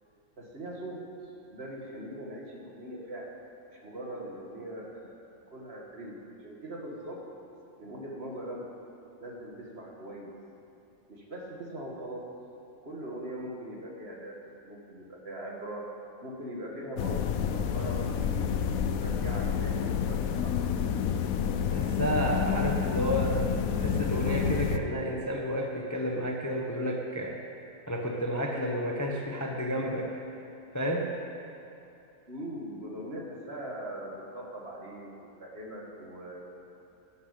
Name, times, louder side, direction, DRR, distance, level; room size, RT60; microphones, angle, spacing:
voice 1, 0.4-3.4 3.7-7.2 7.8-8.7 9.2-10.3 11.1-12.3 12.8-15.9 16.2-18.7 19.0-20.6 32.3-35.1 35.4-36.4, right 1 dB, 50° right, -1 dB, 2.1 m, -41 dB
sound 1, 17.0-24.8, left 7 dB, 85° left, 1.1 m, -29 dB
voice 2, 21.7-27.4 27.9-30.4 30.7-31.1, equal, 15° left, 0 dB, 0.9 m, -31 dB
10.5 x 10.5 x 8.4 m, 2.8 s
omnidirectional pair, 1.4 m